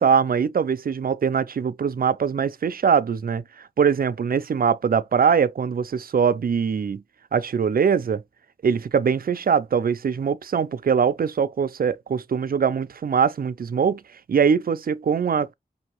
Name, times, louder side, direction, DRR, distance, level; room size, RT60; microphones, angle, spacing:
voice 1, 0.0-7.0 7.3-8.2 8.6-14.0 14.3-15.5, right 6 dB, 70° right, 0.5 m, -22 dB
5.3 x 2.9 x 3.0 m
wide cardioid pair, 65°, 16 cm